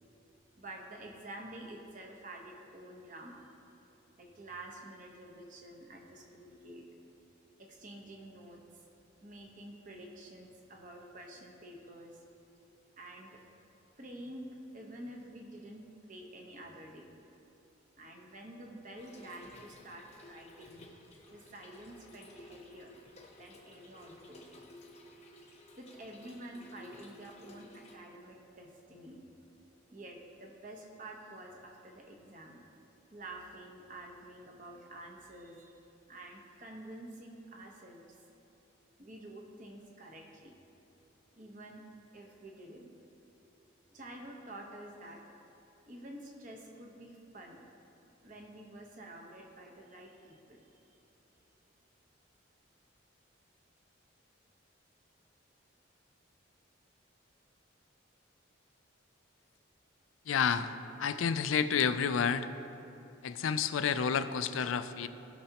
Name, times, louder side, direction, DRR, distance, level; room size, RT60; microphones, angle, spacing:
voice 1, 0.6-3.5 4.2-6.8 7.6-8.6 9.2-12.2 13.0-13.4 14.0-17.1 18.0-20.8 21.3-22.9 23.4-24.7 25.8-29.2 29.9-32.6 33.1-35.8 36.1-38.2 39.0-40.5 41.3-41.8 42.1-42.9 43.9-45.2 45.9-47.6 48.2-50.7, right 1 dB, 40° right, 0 dB, 1.1 m, -49 dB
Trickle dribble / Fill (with liquid), 19.0-28.0, left 1 dB, 30° left, 0.9 m, -55 dB
voice 2, 60.3-60.7 61.0-62.5 63.2-65.1, left 6 dB, 85° left, 11 dB, 0.4 m, -30 dB
17.0 x 5.9 x 2.9 m, 2.9 s
head